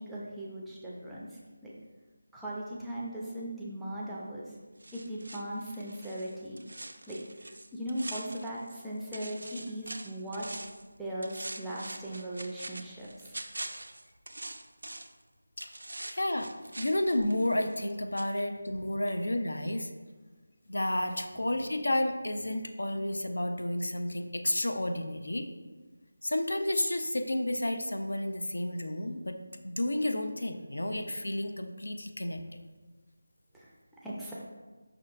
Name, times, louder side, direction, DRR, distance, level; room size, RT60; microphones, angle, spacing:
voice 1, 0.0-1.7 2.3-4.5 4.9-6.6 7.1-7.2 7.7-10.5 11.0-13.4 33.5-33.7 34.0-34.3, right 1 dB, ahead, -8 dB, 0.4 m, -38 dB
sound 1, 4.8-8.9 9.1-10.9 11.2-15.2 15.6-17.9 18.2-18.3, right 2 dB, 70° right, 0.3 m, -44 dB
voice 2, 16.0-16.5 16.8-20.0 20.7-25.5 26.2-32.4, left 1 dB, 75° left, 6 dB, 0.4 m, -31 dB
5.6 x 2.3 x 2.4 m, 1.3 s
figure-of-eight pair, 165°, 0 cm